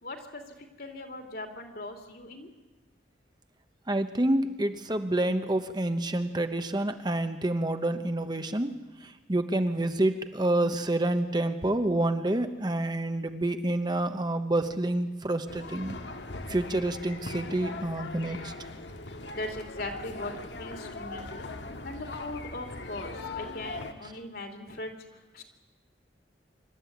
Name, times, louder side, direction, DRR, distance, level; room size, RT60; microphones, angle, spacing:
voice 1, 0.0-2.5 19.3-20.3 20.6-21.5 21.8-25.4, left 2 dB, 55° left, 5 dB, 2.9 m, -39 dB
voice 2, 3.9-16.0 16.5-18.7, right 1 dB, 25° right, 8 dB, 0.9 m, -28 dB
sound 1, 15.5-23.9, left 3 dB, 75° left, 1.8 m, -40 dB
25.5 x 13.0 x 9.3 m, 1.1 s
head